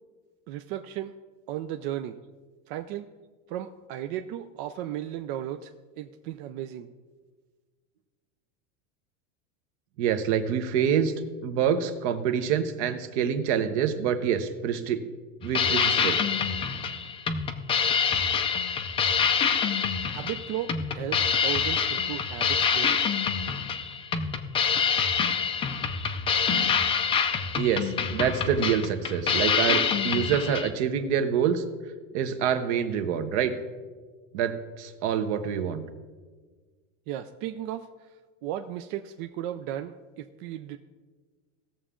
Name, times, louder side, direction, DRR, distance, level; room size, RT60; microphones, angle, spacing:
voice 1, 0.5-1.1 1.5-2.2 2.7-3.1 3.5-6.9 20.1-23.0 37.1-38.1 38.4-40.8, right 11 dB, 40° right, 7 dB, 0.5 m, -35 dB
voice 2, 10.0-11.1 11.4-15.0 15.4-16.2 27.6-31.6 32.1-33.5 34.3-35.8, right 8 dB, 60° right, 9 dB, 1.2 m, -26 dB
sound 1, 15.4-30.7, left 6 dB, 15° left, 0.4 m, -26 dB
18.5 x 7.0 x 3.7 m, 1.4 s
supercardioid pair, 150°, 39 cm